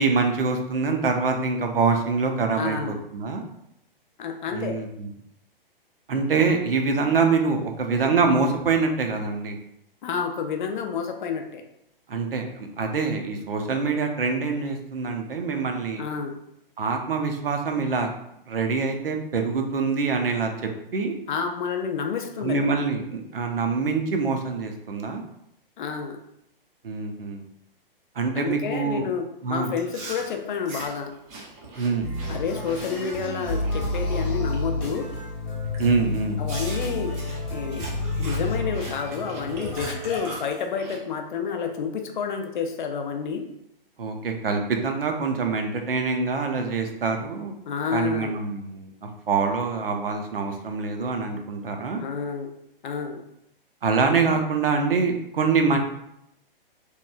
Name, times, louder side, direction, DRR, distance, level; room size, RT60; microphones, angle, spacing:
voice 1, 0.0-3.4 4.5-5.1 6.1-9.6 12.1-16.0 16.8-18.1 18.5-20.5 20.9-21.2 22.4-25.2 26.8-27.4 28.2-29.0 29.4-29.7 31.8-32.1 35.8-36.4 44.0-47.6 47.9-48.9 49.3-52.0 53.8-55.8, right 4 dB, 75° right, 4 dB, 0.6 m, -25 dB
voice 2, 2.6-3.0 4.2-4.8 10.0-11.6 16.0-16.4 21.3-22.6 25.8-26.2 28.3-31.1 32.3-35.1 36.4-37.1 37.5-37.8 38.2-43.5 47.7-48.4 52.0-52.5 52.8-53.2, left 6 dB, 60° left, 5 dB, 0.4 m, -29 dB
Chewing mastication, 29.7-34.6 34.9-35.3 35.7-35.9 36.5-41.0, right 2 dB, 20° right, 0.4 m, -41 dB
sound 1, 32.0-40.2, left 2 dB, 25° left, 1.0 m, -29 dB
2.9 x 2.2 x 2.2 m, 0.79 s
figure-of-eight pair, 120°, 29 cm